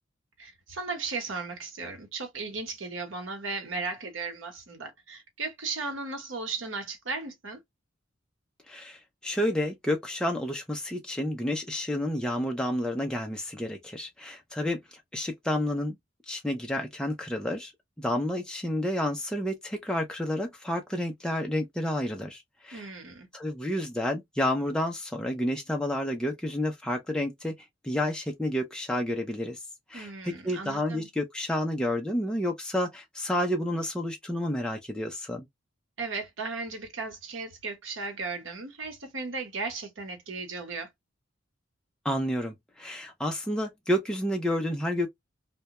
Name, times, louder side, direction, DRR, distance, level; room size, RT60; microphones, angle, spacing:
voice 1, 0.4-7.6 22.7-23.3 29.9-31.1 36.0-40.9, right 4 dB, 85° right, 1.0 m, -36 dB
voice 2, 8.7-14.8 15.1-16.0 16.3-17.7 18.0-22.9 23.3-27.5 27.8-29.6 29.9-35.5 42.0-45.1, left 1 dB, 5° left, 0.4 m, -30 dB
2.2 x 2.1 x 2.8 m
head